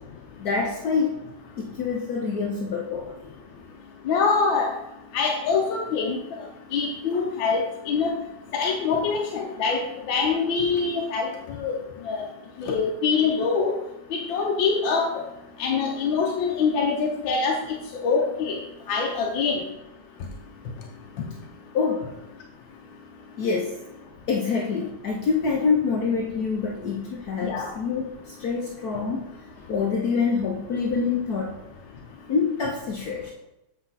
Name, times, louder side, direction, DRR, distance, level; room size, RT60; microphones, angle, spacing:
voice 1, 0.4-1.1 1.6-3.2 7.1-7.2 21.7-22.1 23.4-23.8 24.3-29.3 29.7-31.5 32.3-33.3, left 5 dB, 60° left, 0 dB, 1.2 m, -26 dB
voice 2, 4.1-4.7 5.1-6.2 6.7-8.1 8.5-9.8 10.1-11.8 12.0-12.2 12.6-13.7 14.1-15.2 15.6-17.6 18.0-18.6 18.9-19.6 27.4-27.7, left 5 dB, 90° left, 1 dB, 1.6 m, -24 dB
8.2 x 6.0 x 4.0 m, 0.92 s
omnidirectional pair, 2.0 m